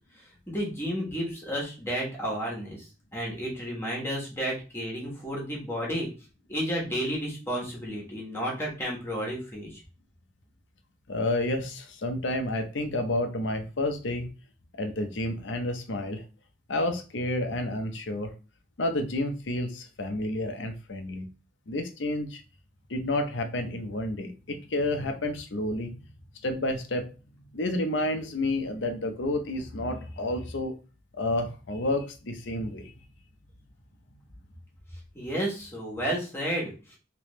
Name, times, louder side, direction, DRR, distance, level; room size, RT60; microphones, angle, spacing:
voice 1, 0.5-6.1 6.5-9.8 35.1-37.0, equal, 15° left, -3 dB, 1.2 m, -32 dB
voice 2, 11.1-14.3 14.8-16.2 16.7-18.3 18.8-21.3 21.7-22.4 22.9-25.9 26.4-27.1 27.5-30.7 31.1-32.9, left 1 dB, 75° left, 5 dB, 0.7 m, -30 dB
3.3 x 3.0 x 3.1 m, 0.34 s
head